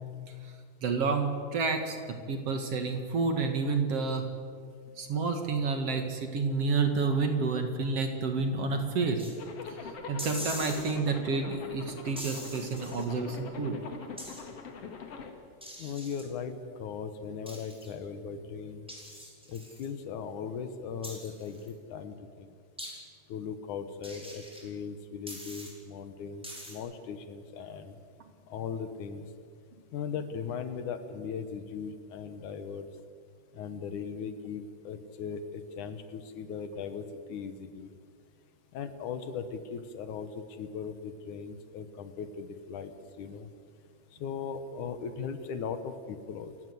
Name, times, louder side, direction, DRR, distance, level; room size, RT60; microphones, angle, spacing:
voice 1, 0.8-4.3 5.0-9.3 9.7-13.8, right 4 dB, 50° right, 5 dB, 2.6 m, -30 dB
sound 1, 9.2-9.3 10.2-10.9 12.2-13.0 14.2-14.5 15.6-16.2 17.5-17.9 18.9-19.9 21.0-21.7 22.8-22.9 24.0-24.7 25.3-25.7 26.4-26.7, equal, ahead, 4.5 m, -42 dB
Zipper (clothing), 9.4-15.3, left 4 dB, 50° left, 2.6 m, -43 dB
voice 2, 15.8-18.8 19.5-22.5 23.3-28.0 28.5-29.2 29.9-32.9 33.5-37.9 38.7-40.3 40.6-42.9 43.2-43.5 44.2-46.5, left 6 dB, 70° left, 10 dB, 2.6 m, -38 dB
28.0 x 15.5 x 8.1 m, 2.1 s
omnidirectional pair, 3.7 m